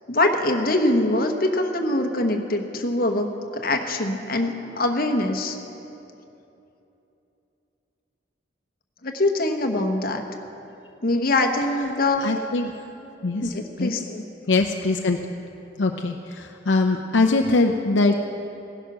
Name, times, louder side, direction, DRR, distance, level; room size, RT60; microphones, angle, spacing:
voice 1, 0.1-5.6 9.0-10.2 11.0-12.3 13.4-14.2, left 2 dB, 50° left, 4 dB, 1.2 m, -23 dB
voice 2, 12.2-12.7 13.2-13.9 14.5-15.2 15.8-18.2, left 3 dB, 75° left, 4 dB, 0.7 m, -22 dB
16.5 x 11.0 x 6.1 m, 2.9 s
head